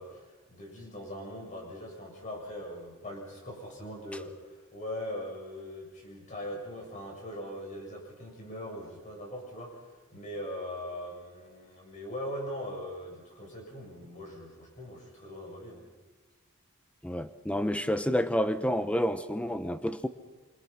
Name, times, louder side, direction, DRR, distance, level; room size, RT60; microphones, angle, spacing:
voice 1, 0.0-15.9, left 1 dB, 35° left, 0 dB, 7.0 m, -41 dB
voice 2, 17.0-20.1, equal, 5° left, 10 dB, 0.9 m, -29 dB
27.0 x 25.5 x 5.9 m, 1.3 s
head